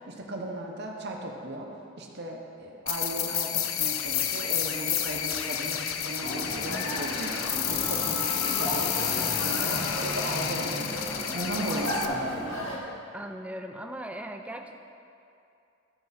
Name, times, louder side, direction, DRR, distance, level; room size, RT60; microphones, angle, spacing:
voice 1, 0.1-1.7 2.0-7.3 7.6-10.9 11.3-12.3, right 1 dB, 55° right, 1 dB, 1.0 m, -36 dB
sound 1, 2.9-12.1, left 10 dB, 85° left, 0.5 m, -30 dB
sound 2, 6.2-12.8, equal, 70° left, 1.5 m, -34 dB
voice 2, 6.6-7.0 9.7-10.0 13.1-14.8, right 1 dB, 5° right, 4 dB, 0.4 m, -39 dB
13.0 x 4.7 x 4.1 m, 2.6 s
head